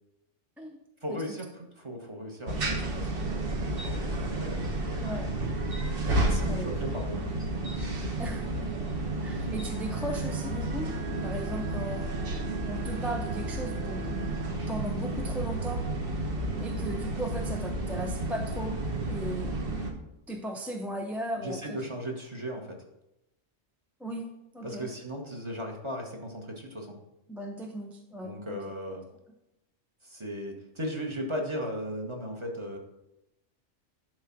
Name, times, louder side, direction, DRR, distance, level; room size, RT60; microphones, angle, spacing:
voice 1, 1.0-3.4 3.8-5.1 6.3-7.3 21.4-22.8 24.6-27.0 28.2-29.0 30.0-32.8, equal, 20° right, 1 dB, 1.4 m, -37 dB
sound 1, 2.5-19.9, right 2 dB, 45° right, 1.3 m, -31 dB
voice 2, 5.0-5.3 6.5-6.8 8.2-8.7 9.2-10.9 11.2-12.1 12.6-15.9 16.6-18.8 19.1-19.6 20.3-21.8 24.0-24.9 27.3-28.7, equal, ahead, 2 dB, 0.5 m, -37 dB
11.5 x 3.8 x 5.9 m, 0.90 s
omnidirectional pair, 1.4 m